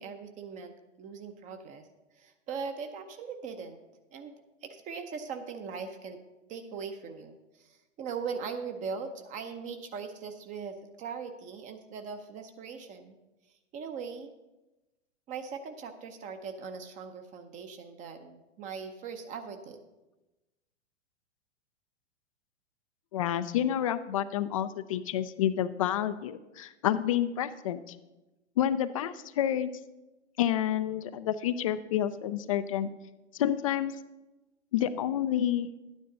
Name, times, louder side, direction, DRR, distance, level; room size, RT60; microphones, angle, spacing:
voice 1, 0.0-1.9 2.1-3.8 4.1-4.3 4.6-6.2 6.5-13.1 13.7-14.3 15.3-19.8, right 5 dB, 20° right, 7 dB, 0.7 m, -40 dB
voice 2, 23.1-28.0 28.6-29.7 30.4-32.9 33.3-33.9 34.7-35.7, left 11 dB, 30° left, 14 dB, 0.3 m, -29 dB
11.5 x 9.5 x 3.9 m, 1.1 s
figure-of-eight pair, 105°, 36 cm